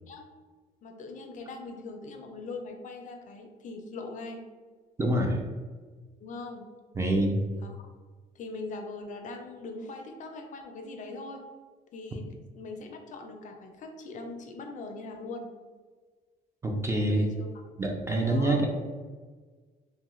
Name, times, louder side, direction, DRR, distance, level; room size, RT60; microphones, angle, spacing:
voice 1, 0.8-4.5 6.2-6.7 7.6-7.9 8.4-11.4 11.9-12.3 12.6-15.5 16.9-17.5 18.2-18.7, left 3 dB, 50° left, 4 dB, 0.4 m, -41 dB
voice 2, 5.0-5.4 6.9-7.4 16.6-17.3 17.8-18.7, right 1 dB, 15° right, 1 dB, 0.4 m, -26 dB
2.7 x 2.2 x 3.0 m, 1.4 s
cardioid pair, 110°, 17 cm